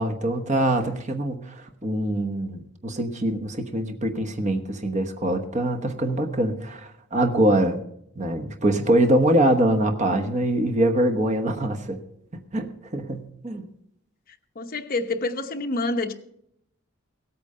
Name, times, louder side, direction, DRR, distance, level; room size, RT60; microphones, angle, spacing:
voice 1, 0.0-7.8 8.1-12.0 12.5-13.7, right 1 dB, 35° right, 1.1 m, -24 dB
voice 2, 14.6-16.1, left 2 dB, 45° left, 0.9 m, -27 dB
16.5 x 8.6 x 5.5 m
head